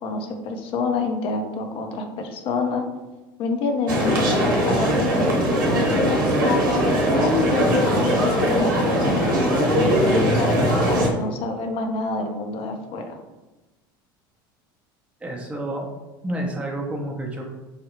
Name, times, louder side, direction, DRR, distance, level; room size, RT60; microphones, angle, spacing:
voice 1, 0.0-2.8 3.4-4.4 4.7-5.4 5.7-6.2 7.2-9.7 10.0-13.2, left 4 dB, 55° left, 4 dB, 0.7 m, -28 dB
sound 1, 3.9-11.1, equal, 85° right, 0.9 m, -20 dB
voice 2, 15.2-15.9 16.2-17.5, right 1 dB, 10° right, -2 dB, 0.7 m, -29 dB
4.9 x 2.3 x 3.0 m, 1.1 s
hypercardioid pair, 85°, 11 cm